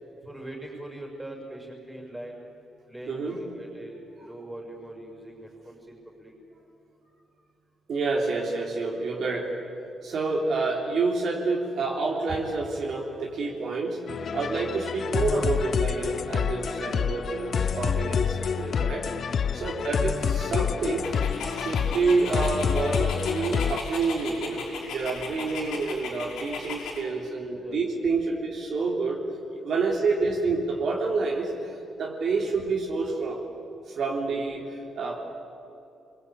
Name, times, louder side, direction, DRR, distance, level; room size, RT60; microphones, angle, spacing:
voice 1, 0.2-2.4 2.9-3.9 4.2-6.3 8.7-8.9 10.1-10.2 13.5-13.7 14.6-14.8 19.5-19.9 27.6-27.8 32.4-32.5, right 1 dB, 5° right, 0 dB, 6.4 m, -42 dB
voice 2, 3.1-3.4 7.9-9.5 10.0-14.0 14.3-19.1 19.5-21.1 21.5-29.2 29.6-33.4 33.9-35.2, right 3 dB, 50° right, -2 dB, 3.8 m, -28 dB
sound 1, 14.1-23.8, left 7 dB, 45° left, 0.6 m, -28 dB
Dog, 21.0-27.0, left 5 dB, 90° left, 5.5 m, -37 dB
29.0 x 23.0 x 8.9 m, 2.8 s
cardioid pair, 155°, 0 cm